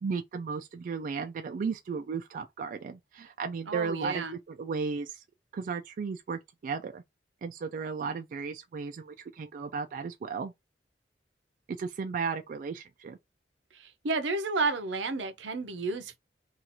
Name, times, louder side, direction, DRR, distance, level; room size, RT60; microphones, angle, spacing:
voice 1, 0.0-5.2 5.5-7.0 7.4-10.5 11.7-13.2, right 5 dB, 50° right, 0.3 m, -35 dB
voice 2, 3.7-4.4 13.7-16.2, right 3 dB, 80° right, 0.6 m, -31 dB
2.7 x 2.4 x 4.2 m
head